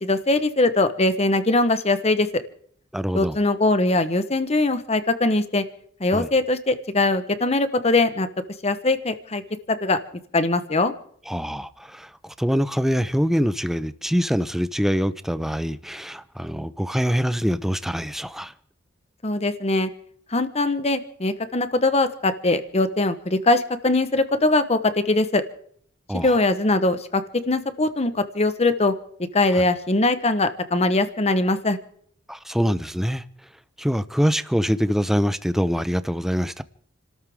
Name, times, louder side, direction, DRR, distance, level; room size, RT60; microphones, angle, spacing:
voice 1, 0.0-2.4 3.1-5.6 6.0-8.3 8.6-9.4 9.7-10.0 10.3-10.9 19.2-19.9 20.3-25.4 26.1-28.9 29.3-31.8, left 2 dB, 35° left, 1.1 m, -21 dB
voice 2, 2.9-3.4 6.1-6.3 11.3-18.5 26.1-26.4 29.5-29.6 32.3-33.2 33.8-36.6, equal, ahead, 0.6 m, -24 dB
29.5 x 13.0 x 3.7 m
head